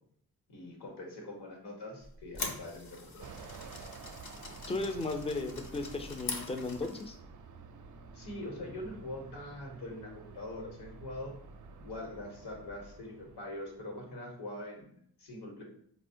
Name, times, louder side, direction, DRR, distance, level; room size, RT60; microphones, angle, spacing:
voice 1, 0.5-3.3 8.1-11.3 11.8-15.6, left 1 dB, 80° left, 0 dB, 1.0 m, -43 dB
sound 1, 2.0-7.1, left 3 dB, 60° left, 0.7 m, -43 dB
Fixed-wing aircraft airplane, 3.2-14.0, right 4 dB, 50° right, 0.4 m, -51 dB
voice 2, 4.7-7.2, left 2 dB, 15° left, 5 dB, 0.4 m, -35 dB
4.1 x 2.1 x 2.6 m, 0.64 s
cardioid pair, 50°, 40 cm